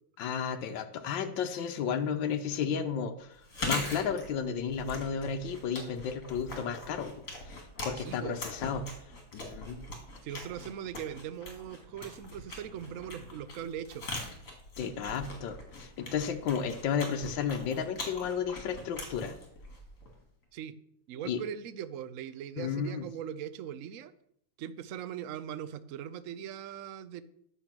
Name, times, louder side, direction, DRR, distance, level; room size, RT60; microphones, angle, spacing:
voice 1, 0.2-8.9 9.3-9.8 14.8-19.3 21.2-21.4 22.6-23.1, left 7 dB, 75° left, 5 dB, 1.5 m, -33 dB
Chewing mastication, 3.4-20.2, left 2 dB, 45° left, 3.0 m, -42 dB
voice 2, 8.0-8.4 10.2-14.1 20.5-20.8 21.1-24.1 24.6-27.2, right 9 dB, 65° right, 13 dB, 0.8 m, -40 dB
10.5 x 7.1 x 5.9 m, 0.71 s
omnidirectional pair, 2.0 m